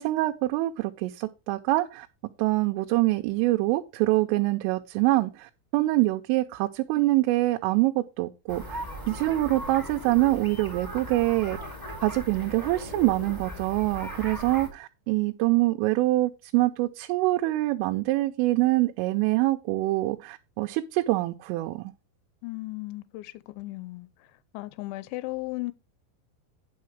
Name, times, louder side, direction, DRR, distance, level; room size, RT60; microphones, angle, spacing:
voice 1, 0.0-2.1 2.4-21.9, right 18 dB, 90° right, 3.2 m, -25 dB
sound 1, 8.5-14.7, equal, 5° left, 2.2 m, -38 dB
voice 2, 22.4-24.1 24.5-25.7, left 21 dB, 80° left, 2.9 m, -35 dB
9.5 x 6.4 x 4.6 m
omnidirectional pair, 5.6 m